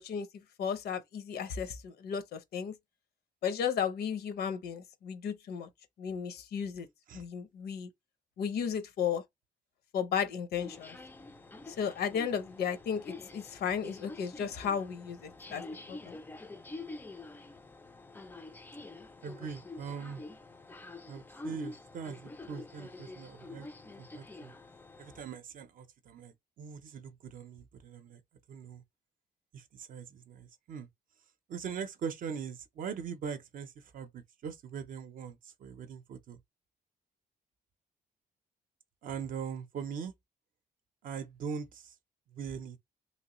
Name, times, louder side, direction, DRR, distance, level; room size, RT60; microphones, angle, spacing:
voice 1, 0.0-2.7 3.4-5.7 6.0-6.9 7.1-7.9 8.4-9.2 9.9-11.0 11.7-16.1, left 7 dB, 75° left, 0.6 m, -34 dB
sound 1, 10.6-25.2, left 2 dB, 10° left, 0.3 m, -47 dB
voice 2, 19.2-20.2 21.1-23.7 24.0-24.5 25.0-28.2 28.5-28.8 29.5-30.9 31.5-36.4 39.0-40.1 41.0-42.0 42.3-42.8, right 6 dB, 55° right, 0.5 m, -41 dB
3.0 x 3.0 x 2.9 m
cardioid pair, 160°, 17 cm